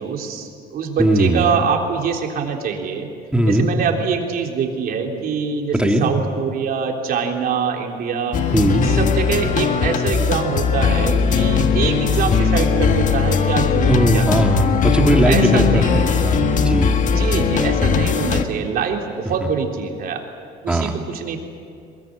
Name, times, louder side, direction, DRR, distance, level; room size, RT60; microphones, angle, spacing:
voice 1, 0.0-3.1 3.5-8.4 8.7-14.3 15.3-16.4 17.1-20.2 20.6-21.4, right 6 dB, 60° right, 2 dB, 3.7 m, -24 dB
voice 2, 1.0-1.5 3.3-3.7 5.7-6.1 8.5-8.9 13.9-17.0 20.7-20.9, right 1 dB, 5° right, 3 dB, 2.6 m, -18 dB
sound 1, 8.3-18.4, left 6 dB, 50° left, 1.7 m, -18 dB
23.0 x 22.0 x 8.8 m, 2.4 s
cardioid pair, 110°, 17 cm